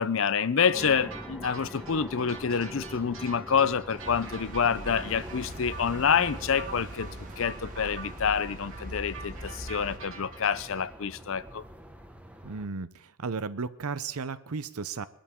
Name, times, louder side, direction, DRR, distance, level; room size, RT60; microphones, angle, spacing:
voice 1, 0.0-7.1 7.4-11.6, left 6 dB, 65° left, 0.6 m, -27 dB
sound 1, 0.6-10.8, right 5 dB, 65° right, 3.2 m, -45 dB
sound 2, 0.7-12.7, equal, 5° right, 0.9 m, -45 dB
sound 3, 4.0-10.0, right 1 dB, 35° right, 1.9 m, -42 dB
voice 2, 12.4-15.1, right 4 dB, 85° right, 0.7 m, -34 dB
21.5 x 13.0 x 3.7 m
head